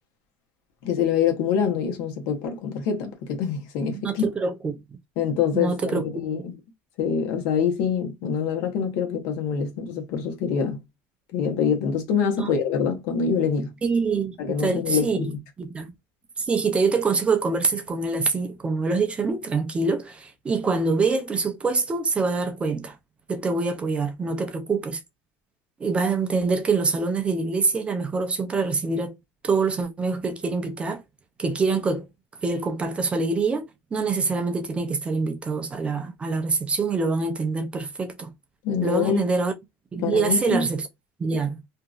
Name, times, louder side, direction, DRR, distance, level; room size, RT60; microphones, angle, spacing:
voice 1, 0.8-4.2 5.2-6.5 7.0-10.8 11.3-13.7 14.4-15.4 38.6-39.2 40.0-40.7, left 7 dB, 75° left, 1.0 m, -25 dB
voice 2, 3.9-4.8 5.5-6.1 12.4-12.5 13.8-15.3 15.6-15.9 16.4-22.9 23.3-25.0 25.8-29.1 29.4-31.0 31.4-32.1 32.4-33.6 33.9-38.3 38.8-39.5 39.9-40.8 41.2-41.6, right 4 dB, 15° right, 0.4 m, -25 dB
2.8 x 2.5 x 2.4 m
cardioid pair, 150°, 6 cm